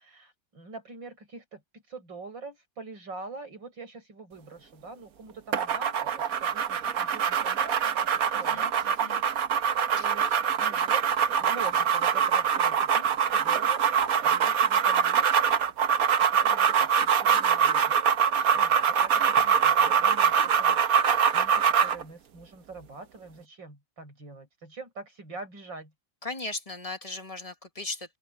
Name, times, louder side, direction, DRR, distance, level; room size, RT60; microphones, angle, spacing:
voice 1, 0.0-8.7 9.9-15.6 16.3-18.0 18.5-25.9, right 4 dB, 80° right, 8.4 m, -44 dB
sound 1, 5.5-22.0, right 7 dB, 55° right, 1.3 m, -24 dB
voice 2, 8.3-9.2 10.0-10.1 26.2-28.2, left 2 dB, 20° left, 1.5 m, -38 dB
open air
omnidirectional pair, 2.0 m